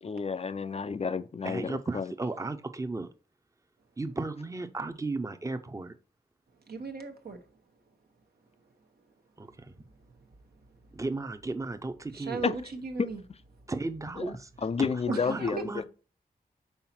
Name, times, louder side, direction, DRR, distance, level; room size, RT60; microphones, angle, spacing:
voice 1, 0.0-2.1 12.4-12.6 14.2-14.3 14.6-15.7, left 5 dB, 40° left, 0.4 m, -31 dB
voice 2, 1.4-3.1 4.0-6.0 9.4-9.7 10.9-12.4 13.7-14.5 14.8-15.8, right 3 dB, 20° right, 0.6 m, -35 dB
voice 3, 6.7-7.4 12.1-13.2 15.1-15.5, right 4 dB, 75° right, 1.0 m, -37 dB
5.7 x 4.0 x 4.3 m
wide cardioid pair, 70°, 16 cm